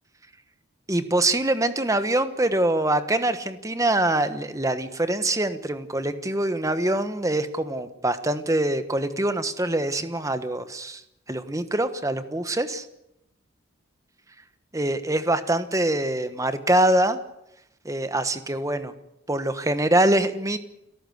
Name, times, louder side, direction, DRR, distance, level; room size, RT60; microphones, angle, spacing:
voice 1, 0.9-11.0 11.3-12.9 14.7-17.2 17.8-18.9 19.3-20.6, right 1 dB, 15° right, 10 dB, 1.3 m, -24 dB
29.5 x 14.0 x 8.1 m, 0.84 s
head